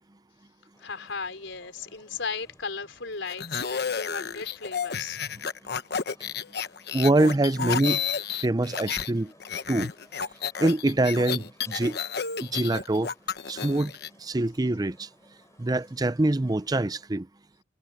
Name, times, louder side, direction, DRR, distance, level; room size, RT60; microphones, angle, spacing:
sound 1, 0.7-17.1, left 1 dB, 15° left, 4.5 m, -60 dB
voice 1, 0.8-5.2, left 5 dB, 90° left, 4.2 m, -36 dB
sound 2, 3.3-9.1 9.4-14.1, left 7 dB, 60° left, 1.1 m, -31 dB
voice 2, 6.9-8.0 8.4-9.3 9.7-9.9 10.6-12.0 12.5-13.1 13.5-13.9 14.2-15.1 15.6-17.3, right 2 dB, 20° right, 0.5 m, -24 dB
head